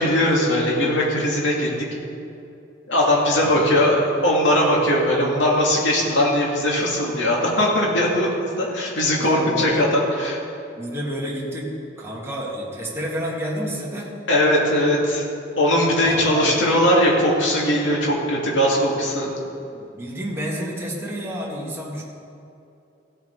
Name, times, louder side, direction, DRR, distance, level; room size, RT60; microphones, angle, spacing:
voice 1, 0.0-1.9 2.9-10.4 14.3-15.3 15.6-19.3, left 1 dB, 80° left, -3 dB, 2.3 m, -20 dB
voice 2, 9.2-9.9 10.8-14.1 16.0-16.6 19.7-22.0, equal, 15° right, -4 dB, 1.8 m, -29 dB
15.5 x 7.4 x 4.6 m, 2.7 s
head